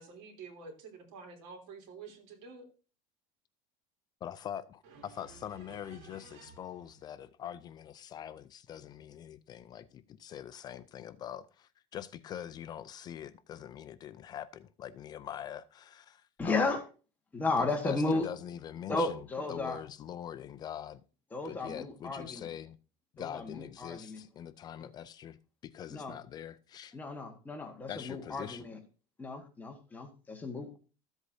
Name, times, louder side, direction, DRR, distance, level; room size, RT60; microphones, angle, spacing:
voice 1, 0.0-2.7 4.8-6.6, right 4 dB, 75° right, 3.3 m, -50 dB
voice 2, 4.2-16.7 17.6-19.2 19.5-21.0 21.4-22.8 23.1-25.4 25.6-26.9 27.9-28.6, left 10 dB, 30° left, 0.4 m, -43 dB
voice 3, 16.4-16.8 17.3-18.3 18.9-19.8 21.3-22.5 23.2-24.2 24.8-24.9 25.9-26.2 26.9-28.8 29.2-30.8, left 3 dB, 10° left, 1.4 m, -34 dB
14.0 x 8.0 x 2.7 m
cardioid pair, 155°, 14 cm